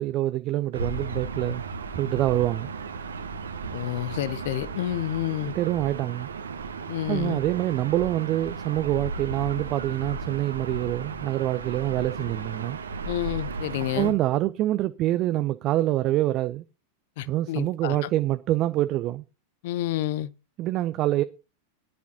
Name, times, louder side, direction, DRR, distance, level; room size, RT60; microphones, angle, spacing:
voice 1, 0.0-1.6 2.0-2.7 5.5-6.3 7.1-12.8 14.0-16.6 17.3-19.2 20.6-21.2, right 15 dB, 35° right, 0.5 m, -26 dB
Gull seagull / Ocean, 0.7-14.1, right 4 dB, 70° right, 1.3 m, -35 dB
voice 2, 3.7-5.5 6.9-7.4 13.0-14.2 17.2-18.1 19.6-20.3, left 14 dB, 50° left, 0.7 m, -29 dB
20.0 x 10.5 x 2.8 m
figure-of-eight pair, 90°, 0 cm